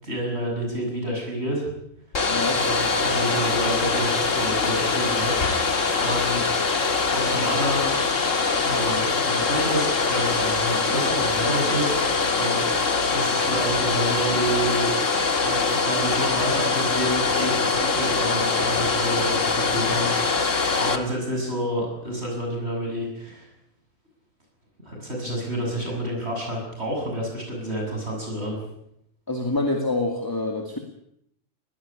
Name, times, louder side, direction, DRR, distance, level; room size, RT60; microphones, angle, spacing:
voice 1, 0.0-1.7 2.5-6.4 7.1-7.9 8.6-12.7 12.9-15.0 15.4-23.5 24.8-28.6, right 1 dB, 55° right, 0 dB, 7.8 m, -29 dB
Domestic sounds home sounds, 2.1-21.0, left 4 dB, 80° left, 2.2 m, -23 dB
voice 2, 2.3-2.6 29.3-30.8, left 2 dB, 15° left, 3 dB, 2.3 m, -26 dB
21.0 x 17.5 x 10.0 m, 0.76 s
omnidirectional pair, 1.3 m